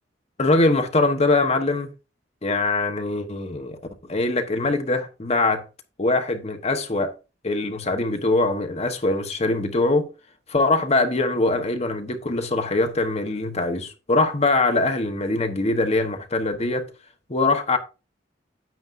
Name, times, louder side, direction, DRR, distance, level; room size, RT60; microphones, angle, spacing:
voice 1, 0.4-1.9 2.4-3.8 4.1-5.6 6.0-7.1 7.4-10.1 10.5-16.9 17.3-17.8, left 2 dB, 35° left, 1.1 m, -22 dB
9.3 x 8.7 x 2.6 m
head